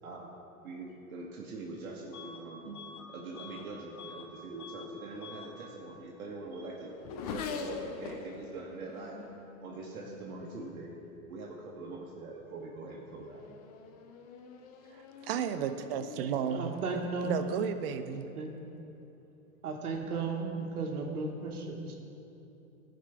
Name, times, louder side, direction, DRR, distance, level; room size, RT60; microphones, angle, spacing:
voice 1, 0.0-6.9 7.2-9.2 9.6-10.9 11.3-13.4, right 3 dB, 75° right, -3 dB, 1.2 m, -43 dB
Bus / Alarm, 2.1-2.4 2.7-4.3 4.6-4.9 5.2-5.5, left 5 dB, 85° left, 1.1 m, -48 dB
Race car auto racing / Accelerating revving vroom, 5.6-11.3 12.1-12.4 12.9-18.8, left 5 dB, 30° left, 0.3 m, -46 dB
voice 2, 14.9-16.8 17.2-18.3, right 8 dB, 45° right, 10 dB, 0.4 m, -33 dB
voice 3, 16.5-17.3 18.3-18.5 19.6-21.9, right 4 dB, 90° right, 2 dB, 1.3 m, -35 dB
13.0 x 5.0 x 3.3 m, 2.9 s
hypercardioid pair, 130°, 43 cm